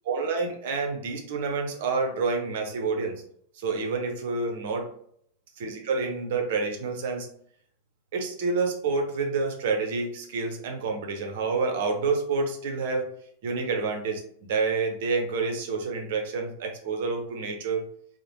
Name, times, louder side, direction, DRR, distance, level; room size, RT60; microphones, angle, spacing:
voice 1, 0.1-3.2 3.6-4.9 5.6-7.3 8.1-13.1 13.4-17.9, right 4 dB, 55° right, 3 dB, 0.6 m, -28 dB
3.0 x 2.0 x 2.7 m, 0.64 s
figure-of-eight pair, 90°, 0 cm